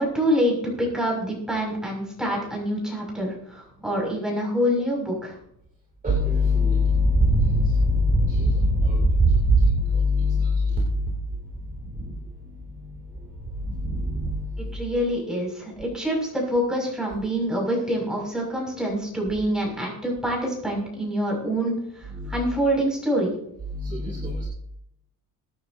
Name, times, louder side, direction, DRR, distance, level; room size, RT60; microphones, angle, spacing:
voice 1, 0.0-5.4 14.6-23.3, equal, ahead, -2 dB, 6.2 m, -26 dB
voice 2, 6.0-10.6 13.7-14.5 22.1-22.3 23.7-24.5, equal, 20° right, -3 dB, 2.8 m, -21 dB
23.5 x 9.7 x 2.8 m, 0.74 s
cardioid pair, 150°, 36 cm